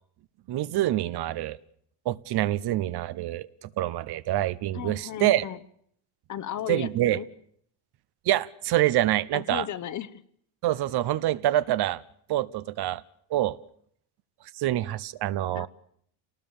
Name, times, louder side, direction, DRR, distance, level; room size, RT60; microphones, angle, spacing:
voice 1, 0.5-1.6 2.0-5.5 6.7-7.2 8.2-9.6 10.6-12.0 12.3-13.0 13.3-13.6 14.5-15.7, right 14 dB, 55° right, 17 dB, 0.9 m, -26 dB
voice 2, 4.7-5.6 6.3-7.3 9.3-10.2 15.5-15.7, left 10 dB, 40° left, 16 dB, 1.0 m, -35 dB
28.0 x 19.0 x 7.1 m, 0.68 s
cardioid pair, 135°, 47 cm